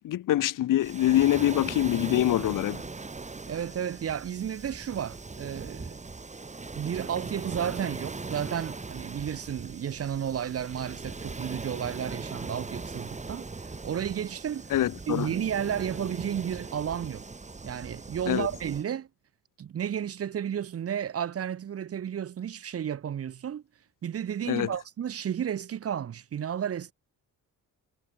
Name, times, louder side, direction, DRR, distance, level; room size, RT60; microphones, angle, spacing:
voice 1, 0.0-2.8 14.7-15.3 18.3-18.5 24.5-24.7, left 13 dB, 65° left, 0.7 m, -24 dB
Waves surf, 0.8-18.8, right 3 dB, 20° right, 3.9 m, -40 dB
voice 2, 3.5-6.0 6.8-13.4 13.8-14.7 15.1-17.3 17.6-19.1 19.6-23.6 24.0-26.9, right 9 dB, 40° right, 0.8 m, -32 dB
cardioid pair, 145°, 35 cm